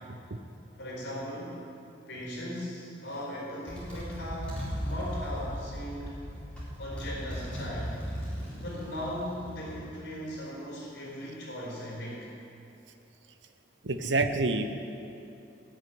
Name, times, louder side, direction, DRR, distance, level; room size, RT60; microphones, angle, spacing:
voice 1, 0.8-1.6 2.1-6.2 6.8-8.1 8.6-12.3, equal, 65° left, -5 dB, 3.9 m, -38 dB
Motorcycle, 3.1-3.3 3.7-9.8, equal, 5° left, 4.1 m, -37 dB
voice 2, 13.8-14.8, right 3 dB, 80° right, 8 dB, 0.8 m, -27 dB
17.0 x 6.5 x 9.3 m, 2.7 s
head